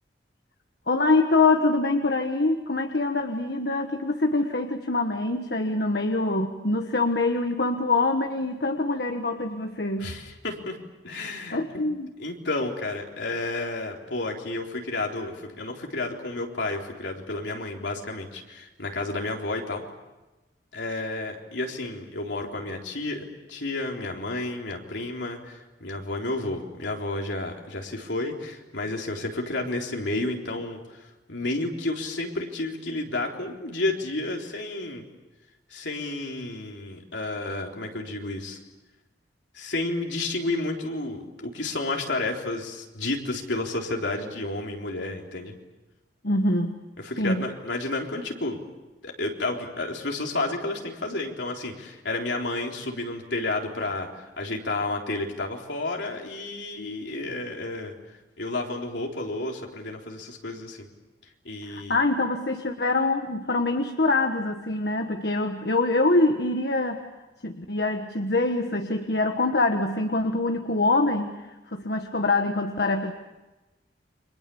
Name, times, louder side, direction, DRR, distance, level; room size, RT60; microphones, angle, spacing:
voice 1, 0.9-10.1 11.5-12.1 46.2-46.8 47.2-47.4 61.6-67.0 67.4-71.3 71.7-73.1, left 2 dB, 60° left, 4 dB, 1.4 m, -24 dB
voice 2, 10.0-10.8 11.0-11.6 12.2-19.8 20.7-35.1 35.7-38.6 39.5-45.5 47.0-48.6 49.0-54.1 54.4-57.9 58.4-60.9 61.4-62.0, left 2 dB, 75° left, 1 dB, 3.8 m, -31 dB
30.0 x 25.0 x 7.1 m, 1.1 s
head